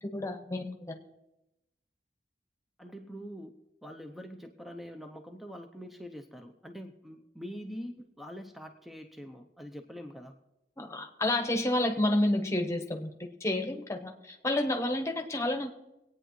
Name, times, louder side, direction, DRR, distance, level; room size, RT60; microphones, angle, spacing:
voice 1, 0.0-1.0 10.8-13.1 13.4-15.7, left 1 dB, 15° left, 3 dB, 1.1 m, -30 dB
voice 2, 2.8-3.6 3.8-10.4, equal, ahead, 5 dB, 0.6 m, -44 dB
24.0 x 9.0 x 3.1 m, 0.94 s
head